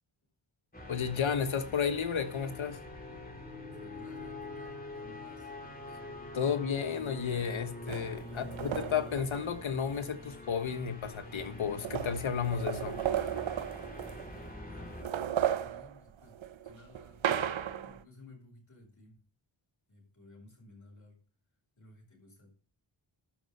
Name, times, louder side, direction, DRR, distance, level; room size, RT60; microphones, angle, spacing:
sound 1, 0.7-15.0, left 2 dB, 20° left, 2.9 m, -45 dB
voice 1, 0.9-2.8 6.3-13.0, left 7 dB, 75° left, 1.3 m, -32 dB
voice 2, 3.8-5.5 8.2-8.6 14.6-16.4 16.6-19.2 19.9-21.2 21.8-22.6, left 1 dB, 40° left, 6.5 m, -56 dB
sound 2, 7.9-10.1 11.1-11.2 11.4-14.5 14.9-18.0, right 9 dB, 75° right, 0.8 m, -35 dB
12.5 x 5.3 x 6.7 m
cardioid pair, 60°, 47 cm